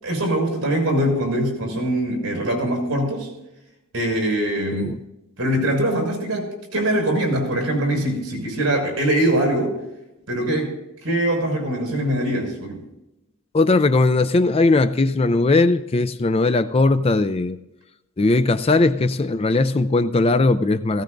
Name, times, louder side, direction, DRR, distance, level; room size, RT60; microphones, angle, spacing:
voice 1, 0.0-3.3 3.9-4.9 5.4-9.8 10.3-10.7 11.0-12.8, right 1 dB, 65° right, 0 dB, 5.6 m, -22 dB
voice 2, 13.5-17.6 18.2-21.0, left 3 dB, 25° left, 11 dB, 0.4 m, -18 dB
18.0 x 16.5 x 2.6 m, 0.92 s
head